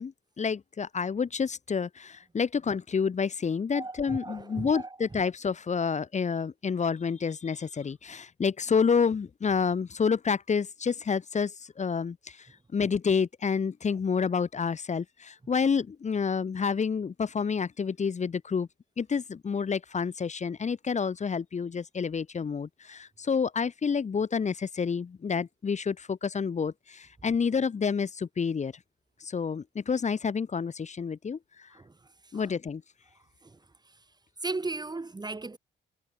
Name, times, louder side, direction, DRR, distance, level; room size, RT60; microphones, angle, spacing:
voice 1, 0.0-12.5 12.7-18.7 19.0-28.7 29.2-31.7 32.3-32.8, left 6 dB, 35° left, 1.4 m, -29 dB
voice 2, 3.7-4.9 31.7-31.9 32.2-32.5 33.4-33.6 33.9-34.0 34.4-35.6, right 3 dB, 20° right, 3.5 m, -36 dB
cardioid pair, 90°, 20 cm